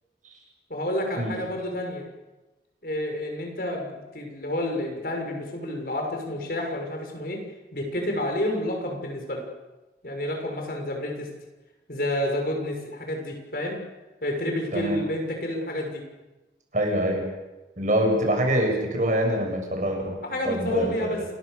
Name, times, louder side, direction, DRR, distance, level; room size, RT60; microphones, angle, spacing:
voice 1, 0.7-2.0 2.8-7.4 7.7-9.5 10.0-11.3 11.9-13.8 14.2-16.0 20.2-21.2, left 1 dB, 55° left, 2 dB, 6.4 m, -29 dB
voice 2, 16.7-17.3 17.8-20.2 20.4-21.2, right 1 dB, 45° right, 2 dB, 7.3 m, -25 dB
29.0 x 22.5 x 6.9 m, 1.1 s
head